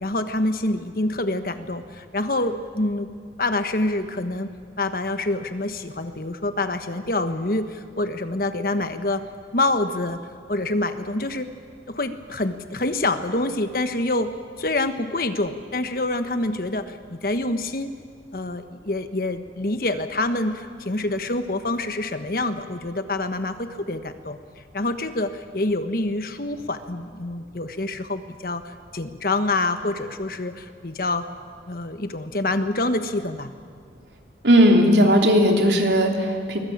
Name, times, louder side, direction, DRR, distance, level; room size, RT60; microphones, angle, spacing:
voice 1, 0.0-3.1 3.4-4.5 4.8-9.2 9.5-10.2 10.5-11.5 11.9-14.3 14.6-17.9 18.3-24.4 24.7-31.3 31.7-33.5, left 2 dB, 55° left, 9 dB, 1.3 m, -26 dB
voice 2, 34.4-36.6, equal, 80° right, 2 dB, 3.1 m, -17 dB
23.5 x 21.0 x 8.8 m, 2.1 s
head